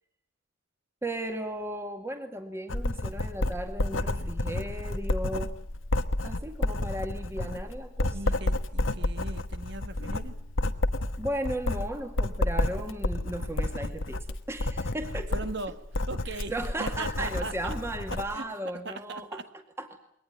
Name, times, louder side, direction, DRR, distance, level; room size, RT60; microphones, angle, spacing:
voice 1, 1.0-5.6 6.2-8.2 11.2-15.3 16.3-19.4 19.8-19.9, right 1 dB, 15° right, 6 dB, 2.1 m, -35 dB
Writing, 2.7-18.3, left 1 dB, 85° left, 1.3 m, -30 dB
voice 2, 8.1-10.4 15.1-17.8 18.1-18.5 18.8-19.5, right 2 dB, 60° right, 10 dB, 1.7 m, -39 dB
22.5 x 19.0 x 9.5 m, 0.75 s
head